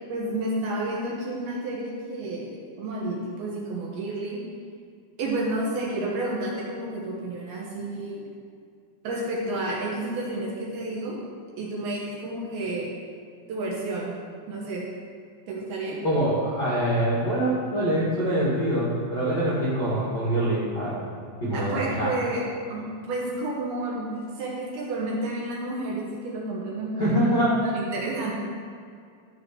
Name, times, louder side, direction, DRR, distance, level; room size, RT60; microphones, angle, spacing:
voice 1, 0.1-4.4 5.2-8.2 9.0-11.2 11.6-12.9 13.5-14.1 14.5-14.8 15.5-16.0 21.5-22.4 22.7-27.2 27.6-28.3, right 2 dB, 65° right, -4 dB, 2.7 m, -30 dB
voice 2, 16.0-21.0 21.4-22.1 27.0-27.6, right 1 dB, 80° left, -8 dB, 0.9 m, -24 dB
13.5 x 4.9 x 6.1 m, 2.2 s
omnidirectional pair, 5.7 m